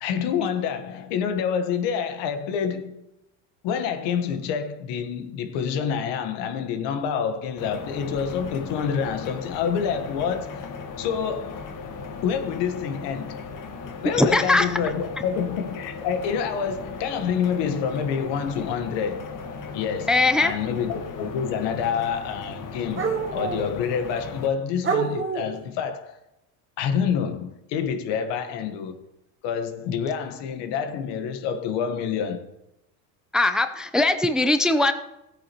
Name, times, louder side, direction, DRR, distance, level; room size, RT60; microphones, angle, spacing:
voice 1, 0.0-3.0 3.6-10.7 11.0-11.7 12.2-13.5 14.0-19.2 19.7-26.2 26.8-29.0 29.4-32.5, left 7 dB, 65° left, 1.4 m, -27 dB
sound 1, 7.6-24.5, left 4 dB, 45° left, 1.6 m, -37 dB
voice 2, 14.2-14.7 20.1-20.5 33.3-34.9, left 2 dB, ahead, 0.6 m, -20 dB
sound 2, 15.9-16.0 17.4-17.5 18.5-18.7 21.2-21.3 22.9-23.7 24.4-24.5 24.8-25.6, right 6 dB, 25° right, 2.0 m, -27 dB
15.5 x 8.8 x 3.0 m
supercardioid pair, 90°, 44 cm